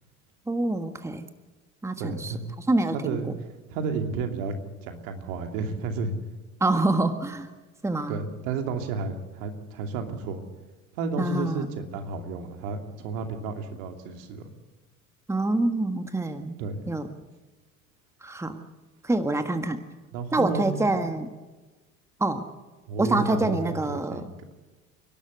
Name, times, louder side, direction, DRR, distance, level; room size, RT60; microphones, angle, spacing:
voice 1, 0.5-1.3 1.8-2.3 2.7-3.2 6.6-7.5 7.8-8.2 11.2-11.7 15.3-16.6 16.9-17.1 18.2-18.6 19.0-19.8 20.3-21.3 22.2-22.4 23.0-24.3, right 2 dB, 5° right, 8 dB, 1.5 m, -26 dB
voice 2, 2.0-2.4 2.9-3.3 3.7-4.6 4.8-6.1 8.1-10.4 10.9-14.5 16.6-16.8 20.1-21.0 22.9-24.3, right 4 dB, 65° right, 5 dB, 2.8 m, -32 dB
29.5 x 12.0 x 8.1 m, 1.2 s
hypercardioid pair, 80°, 43 cm